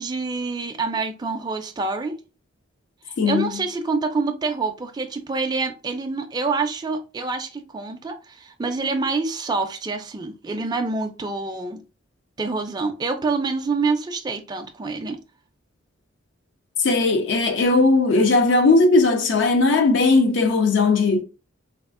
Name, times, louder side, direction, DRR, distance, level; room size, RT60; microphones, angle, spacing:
voice 1, 0.0-2.2 3.1-11.8 12.4-15.2, right 3 dB, 20° right, 0.3 m, -26 dB
voice 2, 3.2-3.5 16.8-21.2, left 3 dB, 65° left, 0.4 m, -18 dB
3.4 x 2.3 x 2.4 m
head